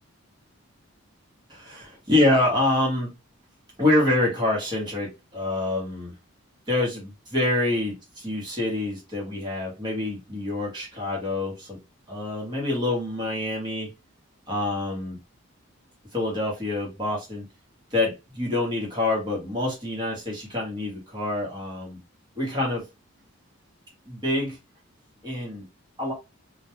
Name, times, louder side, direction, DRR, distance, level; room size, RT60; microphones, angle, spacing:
voice 1, 1.5-3.1 3.8-6.1 6.7-11.8 12.1-13.9 14.5-15.2 16.1-17.5 17.9-22.0 22.3-22.9 24.1-24.6 25.2-25.7 26.0-26.1, left 2 dB, 20° right, 1.0 m, -26 dB
2.2 x 2.2 x 2.8 m
head